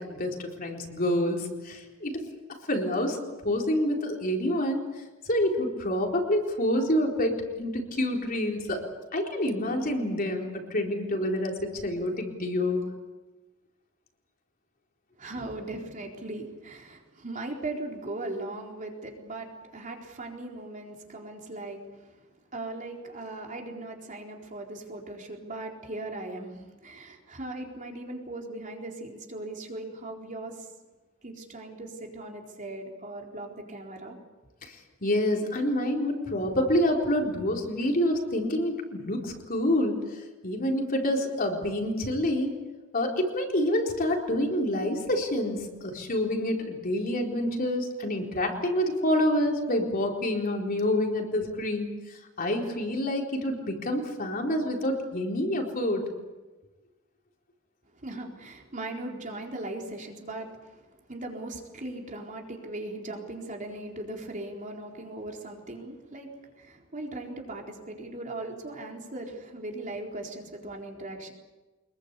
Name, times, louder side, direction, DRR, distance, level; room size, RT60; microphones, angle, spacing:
voice 1, 0.0-2.2 2.7-3.2 3.4-4.8 5.3-8.8 9.1-12.9 34.6-34.7 35.0-40.0 40.4-42.5 42.9-51.9 52.4-56.0, left 1 dB, 45° left, 1 dB, 4.2 m, -27 dB
voice 2, 15.2-21.8 22.5-30.7 31.2-34.2 58.0-60.6 61.1-66.3 66.6-71.3, right 2 dB, 40° right, 1 dB, 4.1 m, -38 dB
25.0 x 22.0 x 8.4 m, 1.2 s
head